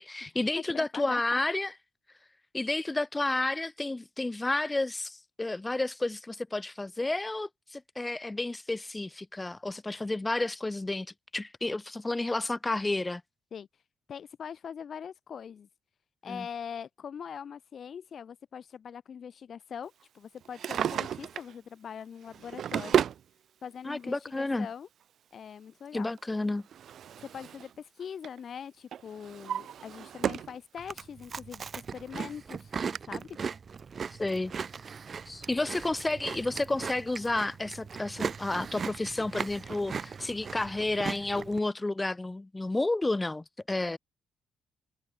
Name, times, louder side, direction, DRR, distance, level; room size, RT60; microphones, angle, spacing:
voice 1, 0.0-1.7 2.5-11.1 11.3-13.2 16.3-16.5 23.8-24.7 25.9-26.7 34.2-34.5 35.3-44.0, left 2 dB, 15° left, 7.1 m, -31 dB
voice 2, 0.5-1.4 13.5-13.7 14.1-15.7 16.2-23.0 23.6-24.9 25.3-26.1 27.2-32.7 33.1-33.4, left 7 dB, 55° left, 6.2 m, -42 dB
Drawer open or close, 20.4-21.5 22.3-23.2 24.3-24.4 26.2-27.7 28.0-28.4 28.9-30.6 31.0-31.1 31.8-31.9 32.2-32.3 32.9-33.0, right 9 dB, 65° right, 1.6 m, -32 dB
Chewing mastication, 30.8-41.6, right 6 dB, 45° right, 4.8 m, -38 dB
cardioid pair, 90°, 0 cm